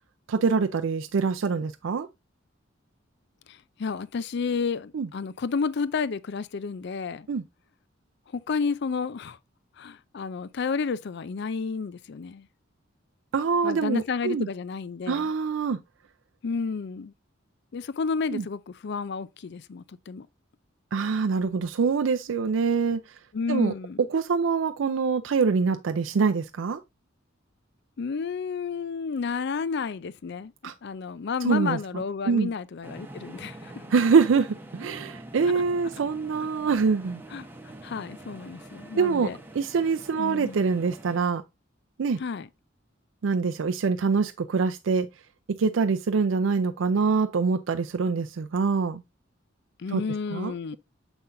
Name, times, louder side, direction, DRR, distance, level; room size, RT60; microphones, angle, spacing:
voice 1, 0.3-2.1 4.9-5.1 7.3-7.4 13.3-14.5 15.1-15.8 18.3-18.4 20.9-23.2 23.5-23.7 24.1-26.8 30.6-30.7 31.4-31.8 32.2-32.5 33.9-37.2 39.0-41.4 42.0-42.2 43.2-45.1 45.6-49.0 49.9-50.0 50.3-50.8, right 5 dB, 75° right, 0.4 m, -25 dB
voice 2, 3.5-7.3 8.3-9.4 9.8-12.5 13.6-15.3 16.4-17.1 17.7-20.3 23.3-24.0 28.0-30.5 30.8-33.8 35.5-35.6 37.3-37.5 37.8-39.4 40.2-40.6 42.2-42.5 49.8-50.8, left 5 dB, 60° left, 0.4 m, -31 dB
sound 1, 32.8-41.2, right 1 dB, 10° right, 0.9 m, -45 dB
7.0 x 5.7 x 2.5 m
head